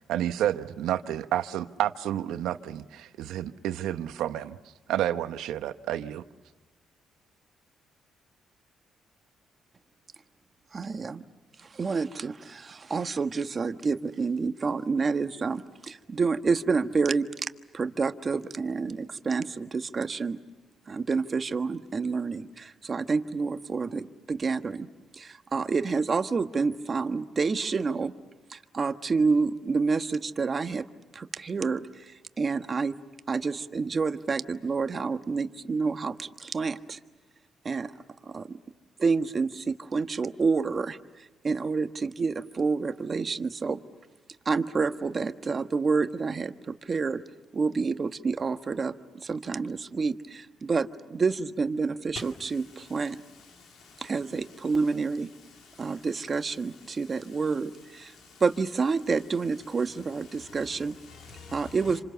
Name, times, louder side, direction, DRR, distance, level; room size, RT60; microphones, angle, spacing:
voice 1, 0.1-4.6 4.9-6.2, right 11 dB, 85° right, 1.1 m, -30 dB
voice 2, 10.7-11.2 11.7-17.2 17.7-20.4 20.9-24.9 25.2-28.1 28.5-30.8 31.1-31.8 32.4-32.9 33.3-37.0 37.6-37.9 38.3-38.5 39.0-41.0 41.4-43.8 44.4-47.2 47.5-48.9 49.2-53.2 54.0-55.3 55.8-58.1 58.4-60.9 61.5-62.0, right 4 dB, 35° right, 1.4 m, -28 dB
voice 3, 53.3-54.1 55.5-56.0 56.9-57.0 58.0-58.4 60.3-61.8, left 4 dB, 80° left, 2.4 m, -48 dB
28.0 x 27.0 x 7.0 m
cardioid pair, 90°, 0 cm